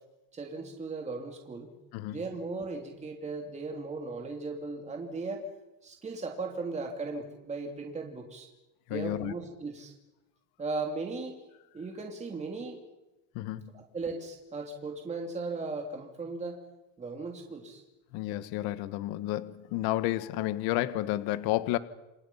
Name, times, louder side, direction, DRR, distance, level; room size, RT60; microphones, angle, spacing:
voice 1, 0.3-1.7 2.1-5.5 5.8-8.5 8.9-9.9 10.6-11.4 11.7-12.8 13.7-16.6 17.0-17.8, right 3 dB, 15° right, 3.1 m, -37 dB
voice 2, 1.9-2.2 8.9-9.3 13.3-13.7 18.1-21.8, left 15 dB, 60° left, 1.6 m, -31 dB
29.0 x 28.5 x 5.7 m
cardioid pair, 160°, 42 cm